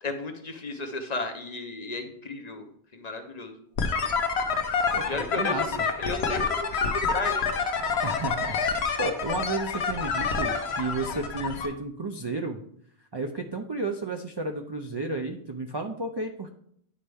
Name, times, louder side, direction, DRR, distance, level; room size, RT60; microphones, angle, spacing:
voice 1, 0.0-3.5 5.1-7.5, left 2 dB, 45° left, 6 dB, 0.7 m, -34 dB
sound 1, 3.8-11.7, left 5 dB, 80° left, 1.0 m, -28 dB
voice 2, 4.9-5.7 8.0-12.6 13.1-16.5, right 2 dB, 40° right, 4 dB, 0.3 m, -32 dB
9.5 x 4.2 x 3.4 m, 0.68 s
omnidirectional pair, 1.1 m